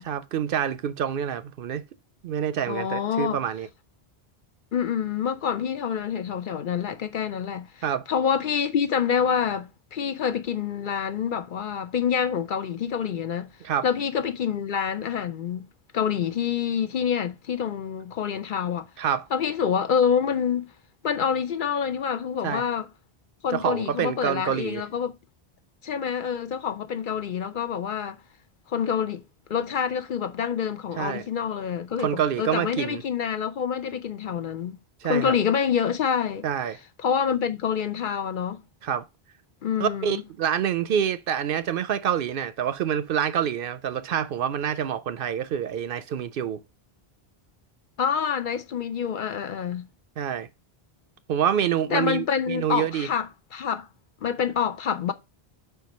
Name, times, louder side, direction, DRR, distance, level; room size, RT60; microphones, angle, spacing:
voice 1, 0.1-1.8 2.2-3.7 7.8-8.0 13.6-13.8 19.0-19.2 22.4-22.6 23.5-24.8 31.0-31.2 32.0-33.0 35.0-35.4 36.4-36.8 38.8-39.1 39.8-46.6 50.2-50.5 51.3-53.1, right 9 dB, 65° right, 0.7 m, -27 dB
voice 2, 2.7-3.4 4.7-13.5 13.8-15.7 15.9-18.9 19.3-20.7 21.0-22.9 23.4-25.1 25.8-28.2 28.7-29.2 29.5-34.8 35.0-36.5 37.0-38.6 39.6-40.2 48.0-49.9 51.9-53.9 54.2-55.1, left 7 dB, 60° left, 0.7 m, -27 dB
4.9 x 4.6 x 5.2 m
omnidirectional pair, 1.1 m